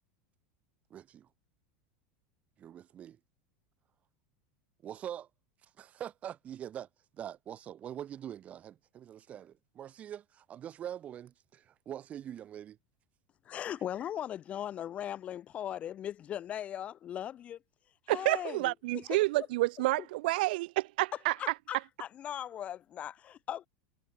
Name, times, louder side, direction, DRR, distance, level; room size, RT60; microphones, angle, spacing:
voice 1, 0.9-1.3 2.6-3.2 4.8-5.3 5.6-6.9 7.1-12.8, right 10 dB, 25° right, 2.3 m, -44 dB
voice 2, 13.5-17.6 18.1-19.5 20.0-20.1 21.4-23.7, left 10 dB, 25° left, 0.5 m, -39 dB
voice 3, 18.1-21.4, right 20 dB, 65° right, 0.3 m, -29 dB
supercardioid pair, 160°, 5 cm